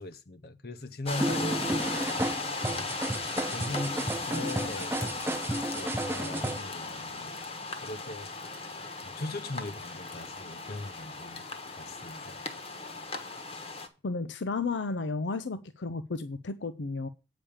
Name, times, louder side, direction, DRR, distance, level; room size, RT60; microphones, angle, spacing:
voice 1, 0.0-2.3 2.6-2.9 3.2-11.4 11.8-12.5, left 2 dB, 55° left, 0.9 m, -40 dB
sound 1, 1.1-13.9, left 3 dB, 30° left, 1.1 m, -37 dB
sound 2, 1.2-6.6, right 1 dB, 10° right, 0.4 m, -32 dB
voice 2, 14.0-17.1, left 3 dB, 80° left, 0.6 m, -33 dB
8.7 x 5.2 x 7.1 m
head